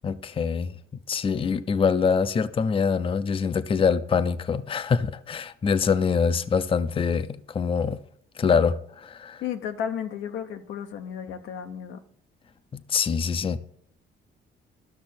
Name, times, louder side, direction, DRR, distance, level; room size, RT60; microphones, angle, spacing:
voice 1, 0.0-0.7 1.1-8.0 8.4-9.4 12.7-13.6, left 6 dB, 25° left, 0.5 m, -24 dB
voice 2, 9.4-12.0, left 8 dB, 90° left, 0.8 m, -33 dB
12.5 x 6.1 x 4.2 m
cardioid pair, 90°, 20 cm